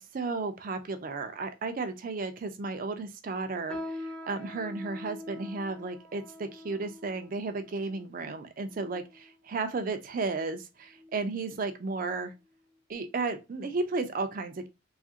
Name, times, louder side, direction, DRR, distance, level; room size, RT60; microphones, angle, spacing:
voice 1, 0.0-12.3 12.9-14.7, right 3 dB, 45° right, 0.4 m, -34 dB
sound 1, 3.7-9.4 10.0-10.2 10.9-11.2 11.6-11.8 12.5-12.6, left 1 dB, 5° left, 0.6 m, -44 dB
2.8 x 2.4 x 2.7 m
head